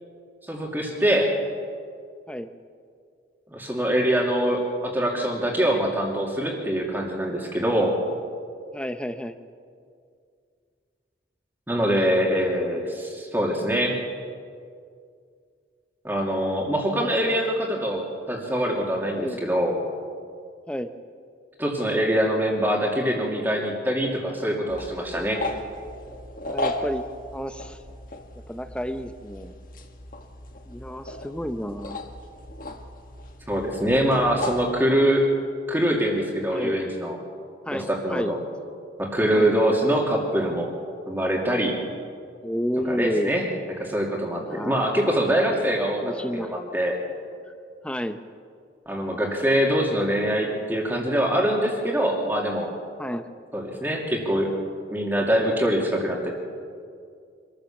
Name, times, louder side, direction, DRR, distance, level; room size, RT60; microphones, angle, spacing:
voice 1, 0.5-1.3 3.5-8.0 11.7-14.0 16.0-19.8 21.6-25.4 33.5-35.3 35.7-37.2 37.7-38.4 39.0-40.7 41.1-41.8 42.8-43.4 43.8-47.0 48.9-52.7 53.5-54.5 54.9-56.3, equal, 10° right, -1 dB, 2.7 m, -24 dB
voice 2, 8.7-9.4 19.1-19.5 20.7-20.9 26.5-27.1 27.3-27.8 28.5-29.5 30.7-32.0 36.5-36.9 37.7-38.3 39.3-39.5 42.4-43.3 44.4-44.8 46.0-46.5 47.8-48.2 53.0-53.3, equal, 5° left, 9 dB, 0.8 m, -30 dB
sound 1, 24.7-34.7, left 2 dB, 45° left, 1.5 m, -36 dB
25.0 x 14.0 x 7.2 m, 2.3 s
head